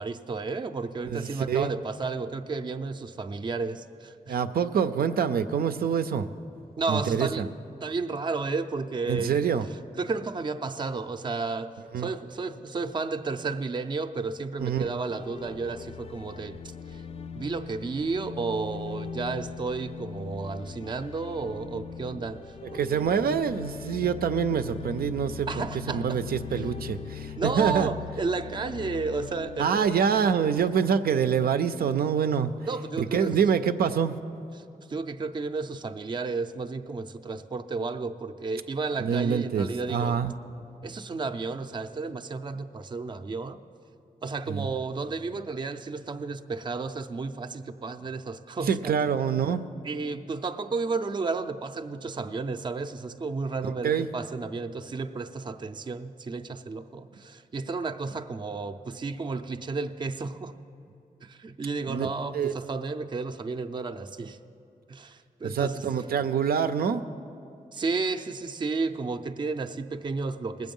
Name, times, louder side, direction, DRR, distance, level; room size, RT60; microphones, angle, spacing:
voice 1, 0.0-4.4 6.8-7.6 7.8-9.4 10.0-16.6 16.9-17.0 17.3-22.9 25.5-26.2 26.5-26.7 27.4-30.2 30.6-30.7 32.7-33.3 34.9-40.2 40.8-43.6 44.2-49.1 49.8-60.6 61.2-64.4 64.9-65.9 67.7-70.7, right 4 dB, 30° right, 0.4 m, -32 dB
voice 2, 1.0-1.7 4.3-6.3 6.9-7.5 9.1-9.7 11.9-12.1 14.6-14.9 22.7-25.5 25.9-27.9 29.6-32.5 33.0-34.2 39.0-40.3 44.5-44.7 48.7-49.7 53.8-54.1 61.9-62.1 62.3-62.5 65.4-67.1, right 7 dB, 90° right, 0.5 m, -26 dB
sound 1, 14.9-30.9, left 7 dB, 40° left, 0.4 m, -41 dB
19.5 x 7.8 x 5.4 m
wide cardioid pair, 120°, 15 cm